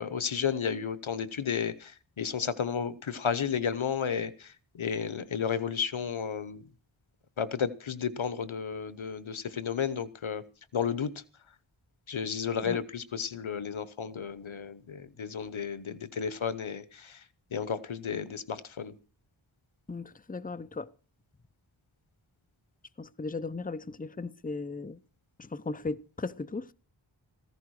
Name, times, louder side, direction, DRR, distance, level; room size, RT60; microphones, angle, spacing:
voice 1, 0.0-6.6 7.4-10.4 10.7-11.1 12.1-17.2 17.5-18.9, left 7 dB, 90° left, 1.1 m, -32 dB
voice 2, 19.9-20.9 23.0-25.0 25.4-26.7, left 3 dB, 20° left, 0.7 m, -37 dB
15.5 x 15.0 x 4.8 m
wide cardioid pair, 60°, 46 cm